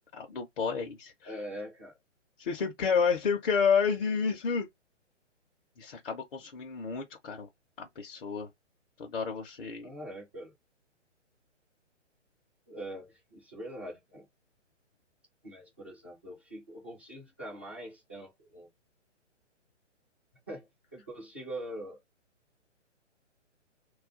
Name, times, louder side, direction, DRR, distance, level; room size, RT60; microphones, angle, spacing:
voice 1, 0.1-1.3 2.4-4.7 5.8-7.5 7.8-8.5 9.0-9.9, left 6 dB, 50° left, 0.7 m, -30 dB
voice 2, 1.2-2.0 9.8-10.5 12.7-14.3 15.4-18.7 20.5-22.0, right 1 dB, 10° right, 0.4 m, -43 dB
2.3 x 2.2 x 3.7 m
figure-of-eight pair, 130°, 37 cm